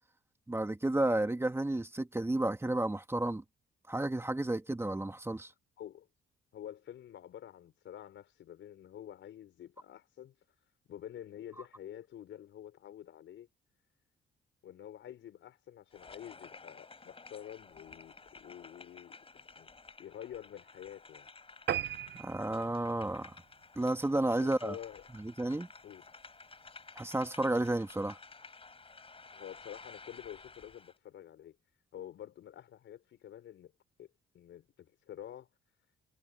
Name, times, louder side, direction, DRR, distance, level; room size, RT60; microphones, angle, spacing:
voice 1, 0.5-3.4 3.9-5.5 22.2-23.4 23.8-24.8 25.1-25.7 27.0-28.2, right 1 dB, 10° right, 2.3 m, -32 dB
voice 2, 6.5-10.4 10.9-13.5 14.6-19.7 20.0-21.3 24.4-25.0 25.8-26.0 29.2-31.6 31.9-33.7 34.0-34.1 34.3-35.5, left 11 dB, 70° left, 5.5 m, -48 dB
sound 1, 15.9-31.0, left 4 dB, 30° left, 6.0 m, -54 dB
sound 2, 21.7-24.4 24.9-25.1 25.5-25.6 25.9-26.0 26.3-26.4, right 10 dB, 60° right, 1.0 m, -38 dB
cardioid pair, 90°, 20 cm